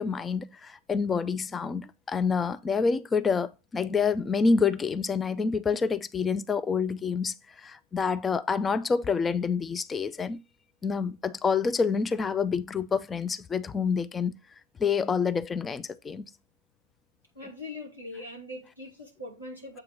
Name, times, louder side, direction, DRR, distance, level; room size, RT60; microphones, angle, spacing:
voice 1, 0.0-7.3 7.6-10.4 10.8-14.4 14.8-16.3, left 5 dB, 15° left, 0.4 m, -27 dB
voice 2, 17.3-19.8, left 2 dB, 85° left, 2.5 m, -41 dB
7.7 x 2.9 x 6.1 m
figure-of-eight pair, 90°, 0 cm